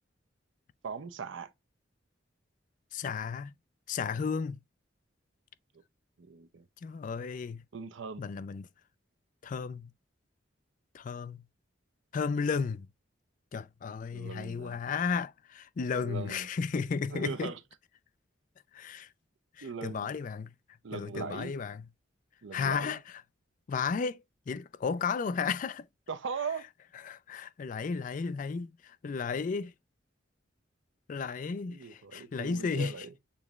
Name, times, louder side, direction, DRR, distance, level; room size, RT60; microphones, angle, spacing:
voice 1, 0.8-1.5 6.2-6.6 7.7-8.2 14.1-14.8 16.0-16.5 17.1-17.6 19.6-20.1 20.8-21.5 22.4-23.0 26.1-26.7 31.7-33.1, right 5 dB, 80° right, 0.6 m, -39 dB
voice 2, 2.9-3.5 3.9-4.6 6.8-7.6 8.2-8.7 9.4-9.9 10.9-11.4 12.1-12.9 13.5-17.5 18.7-19.1 19.6-20.5 20.9-21.9 22.5-23.2 23.7-25.9 27.0-29.7 31.1-32.9, left 5 dB, 45° left, 0.3 m, -34 dB
6.8 x 3.0 x 2.4 m
head